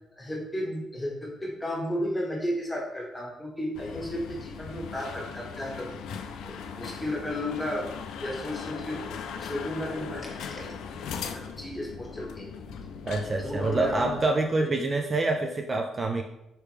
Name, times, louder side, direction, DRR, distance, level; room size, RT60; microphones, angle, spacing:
voice 1, 0.2-6.1 6.4-7.9 8.2-9.1 9.4-11.1 11.3-12.5 13.4-14.3 14.6-14.7, left 1 dB, 10° left, -2 dB, 1.5 m, -34 dB
sound 1, 3.7-14.3, left 6 dB, 85° left, 0.4 m, -39 dB
voice 2, 13.1-16.2, right 2 dB, 35° right, 3 dB, 0.3 m, -26 dB
4.4 x 3.3 x 3.4 m, 0.91 s
cardioid pair, 90°, 0 cm